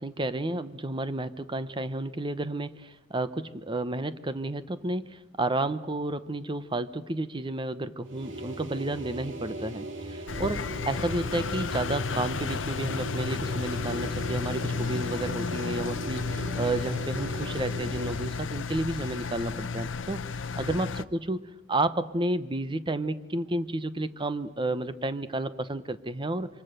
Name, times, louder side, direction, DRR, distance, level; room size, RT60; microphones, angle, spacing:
voice 1, 0.0-20.2 20.6-26.5, right 2 dB, 25° right, 13 dB, 0.9 m, -31 dB
sound 1, 8.0-18.5, right 1 dB, 70° right, 2.7 m, -39 dB
Engine, 10.3-21.0, left 4 dB, 75° left, 0.7 m, -33 dB
27.5 x 24.5 x 6.8 m, 1.1 s
head